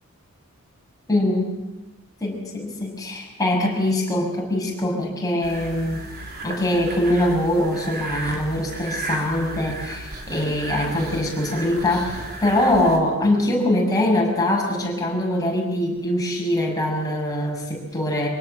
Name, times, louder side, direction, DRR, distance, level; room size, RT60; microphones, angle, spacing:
voice 1, 1.1-1.5 2.2-6.1 6.4-18.3, left 1 dB, 15° left, -1 dB, 6.2 m, -23 dB
sound 1, 5.4-13.0, right 2 dB, 45° right, 3.5 m, -34 dB
25.0 x 17.5 x 7.6 m, 1.1 s
head